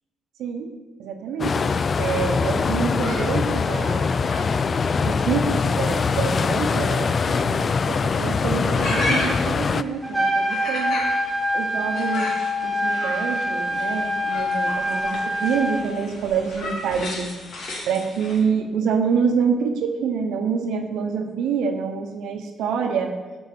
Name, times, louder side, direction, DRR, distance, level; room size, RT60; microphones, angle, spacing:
voice 1, 0.4-0.7 1.0-1.6 2.0-4.1 5.0-11.0 11.5-12.4 12.6-17.3 17.9-23.1, right 6 dB, 85° right, 5 dB, 0.9 m, -26 dB
sound 1, 1.4-9.8, left 5 dB, 40° left, 0.3 m, -23 dB
sound 2, 2.6-18.4, left 1 dB, 65° left, 2.6 m, -35 dB
Trumpet, 10.0-15.8, equal, 5° right, 2.1 m, -25 dB
7.7 x 5.4 x 6.9 m, 1.3 s
cardioid pair, 90°, 0 cm